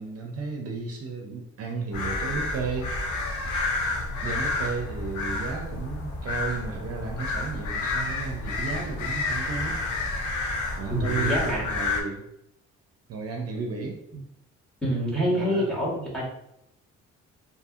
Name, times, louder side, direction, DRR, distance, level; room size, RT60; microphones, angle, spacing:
voice 1, 0.0-2.9 4.2-9.8 10.8-12.2 13.1-14.0 15.2-15.7, right 4 dB, 55° right, 2 dB, 0.5 m, -33 dB
sound 1, 1.9-12.0, left 3 dB, 75° left, 0.7 m, -30 dB
voice 2, 10.9-11.7 14.8-16.3, equal, ahead, -4 dB, 1.2 m, -26 dB
2.7 x 2.6 x 2.4 m, 0.78 s
cardioid pair, 90°, 30 cm